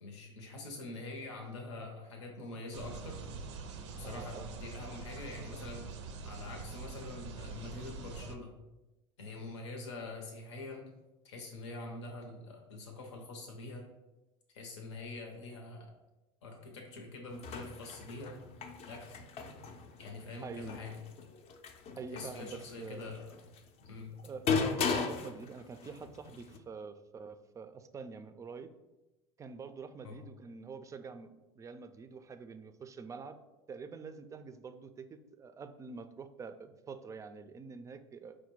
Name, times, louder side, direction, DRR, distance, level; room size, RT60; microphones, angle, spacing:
voice 1, 0.0-3.2 4.0-5.9 6.2-8.6 9.2-10.9 11.2-13.8 14.5-15.9 16.4-18.4 18.8-19.2 20.0-21.0 22.1-23.3 23.8-24.2 30.0-30.2, left 2 dB, 85° left, 2 dB, 0.8 m, -45 dB
sound 1, 2.7-8.4, right 4 dB, 85° right, 0.5 m, -44 dB
voice 2, 4.0-4.5 20.4-20.8 22.0-23.1 24.2-28.7 29.4-33.4 33.7-38.4, right 5 dB, 20° right, 10 dB, 0.3 m, -46 dB
sound 2, 17.3-26.6, left 5 dB, 45° left, 0.5 m, -38 dB
4.8 x 2.2 x 4.5 m, 1.0 s
hypercardioid pair, 95°, 15 cm